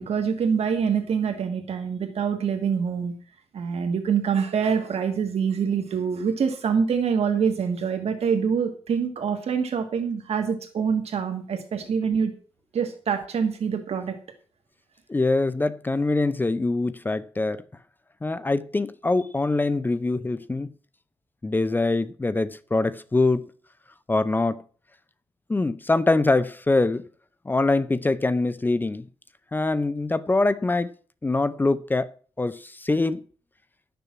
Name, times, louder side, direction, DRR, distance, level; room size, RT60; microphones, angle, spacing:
voice 1, 0.0-3.1 3.5-12.3 12.7-14.1, right 6 dB, 75° right, 1.6 m, -25 dB
voice 2, 15.1-17.6 18.2-20.7 21.4-23.4 24.1-24.6 25.5-27.1 27.5-29.1 29.5-30.9 31.2-32.1 32.4-33.2, left 2 dB, 20° left, 0.5 m, -24 dB
12.0 x 6.9 x 7.3 m
wide cardioid pair, 165°, 11 cm